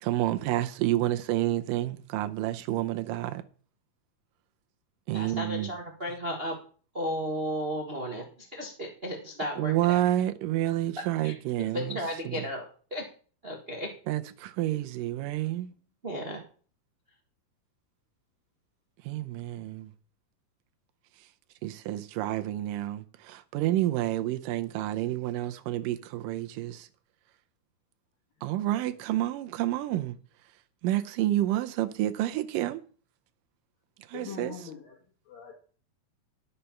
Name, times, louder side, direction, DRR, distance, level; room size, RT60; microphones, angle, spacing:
voice 1, 0.0-3.4 5.1-5.7 9.6-12.0 12.3-12.5 14.1-15.7 19.0-19.9 21.6-26.9 28.4-30.2 30.8-32.8 34.1-34.7, right 14 dB, 85° right, 2.4 m, -29 dB
voice 2, 5.1-6.6 6.9-10.0 11.2-12.6 12.9-13.1 13.4-13.9 16.0-16.4, equal, 65° right, 0.5 m, -34 dB
voice 3, 34.1-34.9 35.3-35.5, left 7 dB, 80° left, 3.5 m, -42 dB
11.0 x 6.7 x 5.8 m
omnidirectional pair, 3.9 m